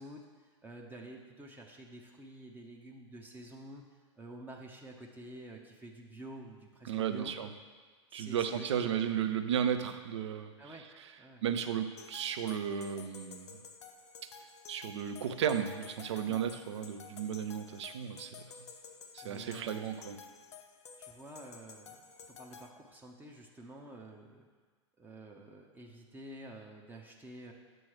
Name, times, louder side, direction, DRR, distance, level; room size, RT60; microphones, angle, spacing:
voice 1, 0.0-7.3 8.1-8.9 10.6-10.9 11.2-11.4 16.3-16.4 19.2-19.9 21.0-24.5 25.0-27.5, right 1 dB, 10° right, 1 dB, 0.6 m, -49 dB
voice 2, 6.9-7.5 8.1-10.5 11.4-13.6 14.7-18.5 19.1-20.2, right 8 dB, 65° right, 8 dB, 0.5 m, -34 dB
sound 1, 12.0-22.7, left 5 dB, 70° left, 0.5 m, -52 dB
7.6 x 3.1 x 6.0 m, 1.5 s
figure-of-eight pair, 95°, 15 cm